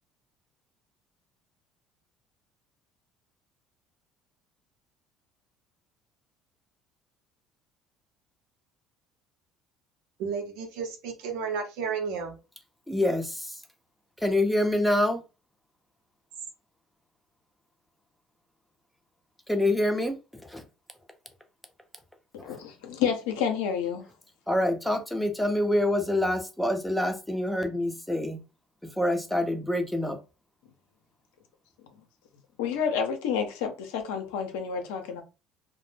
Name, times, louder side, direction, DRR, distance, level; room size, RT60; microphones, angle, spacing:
voice 1, 10.2-12.3, right 6 dB, 75° right, 0.7 m, -32 dB
voice 2, 12.9-13.6 14.2-15.2 19.5-20.6 22.4-22.6 24.5-28.4 29.0-30.2, left 1 dB, 5° left, 0.7 m, -26 dB
voice 3, 22.4-24.1 32.6-35.2, left 7 dB, 85° left, 0.6 m, -29 dB
2.1 x 2.0 x 3.2 m
hypercardioid pair, 75°, 0 cm